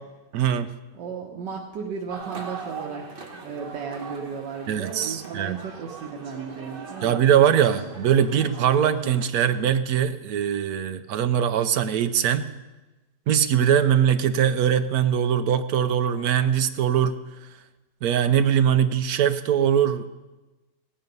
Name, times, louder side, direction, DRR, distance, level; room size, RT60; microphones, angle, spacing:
voice 1, 0.3-0.7 4.7-5.6 7.0-12.5 13.3-17.2 18.0-20.1, right 9 dB, 65° right, 11 dB, 1.1 m, -21 dB
voice 2, 0.9-3.0 3.3-7.2, right 6 dB, 85° right, 0 dB, 1.7 m, -35 dB
sound 1, 2.1-9.3, right 4 dB, 35° right, 1.3 m, -40 dB
16.5 x 8.9 x 5.3 m, 1.1 s
omnidirectional pair, 1.9 m